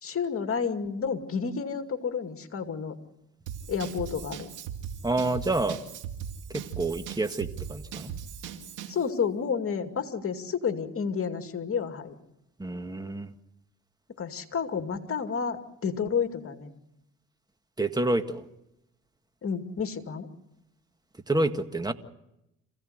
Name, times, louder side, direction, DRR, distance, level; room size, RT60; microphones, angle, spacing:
voice 1, 0.0-3.0 3.7-4.5 8.9-12.2 14.2-16.7 19.4-20.3, left 6 dB, 50° left, 7 dB, 2.4 m, -30 dB
Drum kit / Drum, 3.5-9.0, right 8 dB, 85° right, 2.4 m, -39 dB
voice 2, 5.0-5.8 6.5-8.1 12.6-13.3 17.8-18.4 21.3-21.9, right 2 dB, 15° right, 8 dB, 1.8 m, -28 dB
27.5 x 16.5 x 8.0 m, 0.86 s
cardioid pair, 90°, 30 cm